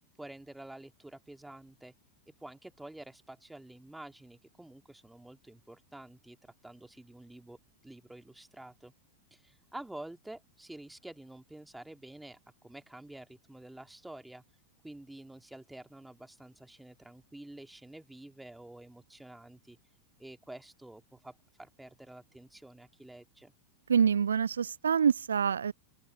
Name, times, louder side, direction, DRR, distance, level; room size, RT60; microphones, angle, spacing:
voice 1, 0.2-1.9 2.4-6.4 6.6-7.6 7.8-8.9 9.3-14.4 14.8-19.8 20.2-23.5, right 1 dB, 5° right, 2.7 m, -49 dB
voice 2, 23.9-25.7, right 7 dB, 70° right, 0.6 m, -26 dB
open air
figure-of-eight pair, 90°, 0 cm